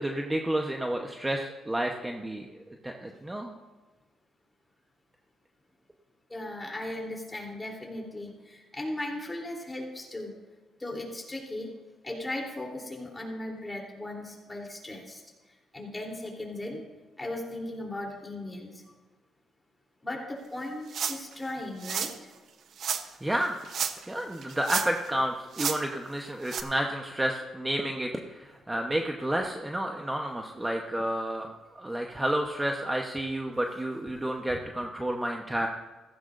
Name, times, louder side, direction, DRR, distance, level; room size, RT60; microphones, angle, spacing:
voice 1, 0.0-2.5 2.8-3.6 23.2-23.6 24.1-31.5 31.7-35.7, right 1 dB, 10° right, 2 dB, 1.0 m, -30 dB
voice 2, 6.3-10.3 10.8-11.7 12.0-15.2 15.7-16.8 17.2-18.7 20.0-22.1 34.5-34.6, left 1 dB, 15° left, -1 dB, 3.3 m, -37 dB
sound 1, 20.9-21.3 21.8-22.2 22.8-23.0 23.6-24.1 24.4-25.1 25.5-25.8 26.5-26.6, right 7 dB, 65° right, 0.9 m, -31 dB
15.5 x 15.0 x 2.6 m, 1.2 s
cardioid pair, 90°, 0 cm